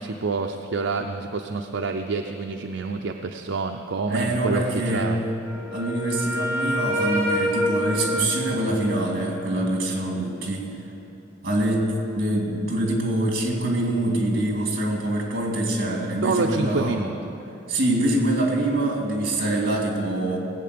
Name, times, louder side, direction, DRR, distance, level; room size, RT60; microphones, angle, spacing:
voice 1, 0.0-5.2 16.2-17.4, right 3 dB, 70° right, 4 dB, 0.6 m, -27 dB
voice 2, 4.1-5.3 5.7-10.7 11.4-11.9 12.2-17.0 17.7-20.4, right 1 dB, 55° right, 0 dB, 2.6 m, -24 dB
Wind instrument woodwind instrument, 5.4-9.3, equal, 15° right, 2.7 m, -27 dB
18.0 x 8.5 x 6.8 m, 3.0 s
head